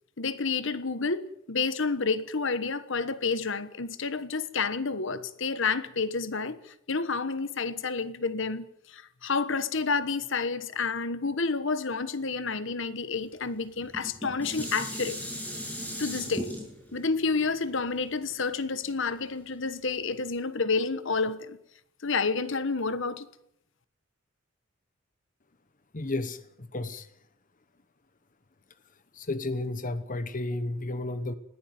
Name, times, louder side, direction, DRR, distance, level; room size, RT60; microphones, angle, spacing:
voice 1, 0.2-15.2 16.0-16.5 16.9-21.6 22.0-23.3, left 4 dB, 65° left, 1.3 m, -29 dB
Dishes pots and pans, 13.8-19.1 19.6-19.7, equal, 10° left, 7.2 m, -38 dB
voice 2, 25.9-27.1 29.1-31.3, left 2 dB, 40° left, 1.1 m, -32 dB
20.5 x 15.5 x 9.3 m
head